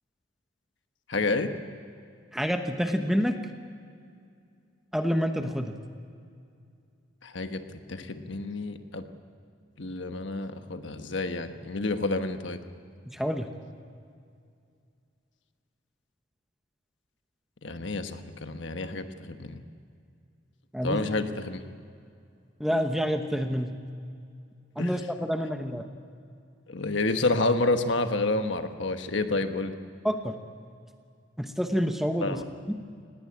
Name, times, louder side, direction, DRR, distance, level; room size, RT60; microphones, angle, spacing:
voice 1, 1.1-1.5 7.2-7.6 7.9-9.0 9.8-12.6 17.6-19.6 20.8-21.6 24.8-24.9 26.7-29.8 32.2-32.4, left 2 dB, 70° left, 8 dB, 1.2 m, -29 dB
voice 2, 2.3-3.4 4.9-5.8 13.1-13.5 20.7-21.0 22.6-23.7 24.8-25.9 30.0-30.4 31.4-32.4 32.7-32.8, equal, ahead, 6 dB, 1.0 m, -28 dB
19.5 x 17.5 x 8.6 m, 2.4 s
head